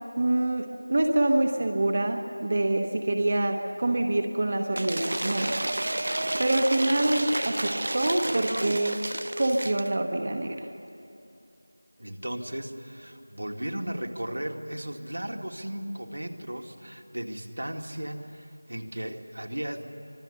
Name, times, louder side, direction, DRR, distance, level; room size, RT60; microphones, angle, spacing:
voice 1, 0.2-6.1 6.4-9.0 9.4-10.7, right 1 dB, 30° right, 4 dB, 1.1 m, -26 dB
Cheering / Applause / Crowd, 4.7-9.9, right 1 dB, 55° right, 0.5 m, -31 dB
voice 2, 12.0-19.8, right 1 dB, 80° right, 2 dB, 2.2 m, -36 dB
24.5 x 23.0 x 6.9 m, 2.7 s
figure-of-eight pair, 175°, 0 cm